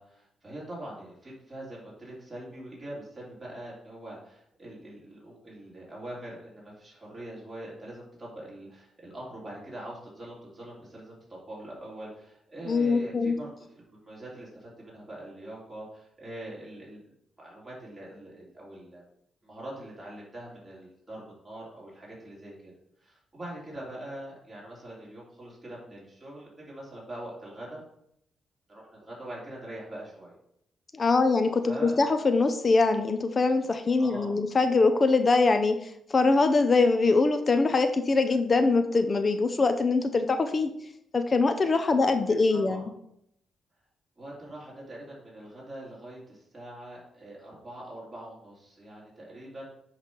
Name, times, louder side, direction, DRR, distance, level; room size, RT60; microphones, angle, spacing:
voice 1, 0.0-17.0 17.4-19.0 19.4-22.7 23.0-27.8 28.7-30.3 31.6-32.0 34.0-34.4 42.5-42.8 44.2-49.7, right 1 dB, 15° right, -6 dB, 3.3 m, -43 dB
voice 2, 12.7-13.4 30.9-40.7 41.1-42.8, left 3 dB, 35° left, 8 dB, 0.5 m, -23 dB
9.6 x 3.2 x 5.2 m, 0.75 s
cardioid pair, 105°, 0 cm